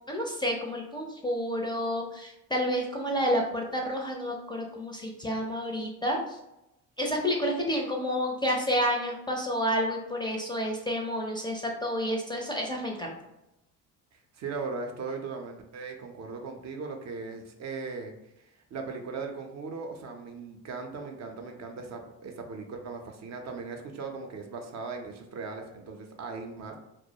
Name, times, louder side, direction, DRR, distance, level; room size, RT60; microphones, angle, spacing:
voice 1, 0.1-6.4 7.0-13.1, equal, 15° left, -1 dB, 0.4 m, -30 dB
voice 2, 14.1-18.1 18.7-26.8, right 4 dB, 50° right, 3 dB, 0.5 m, -38 dB
2.3 x 2.0 x 2.7 m, 0.88 s
supercardioid pair, 80°, 36 cm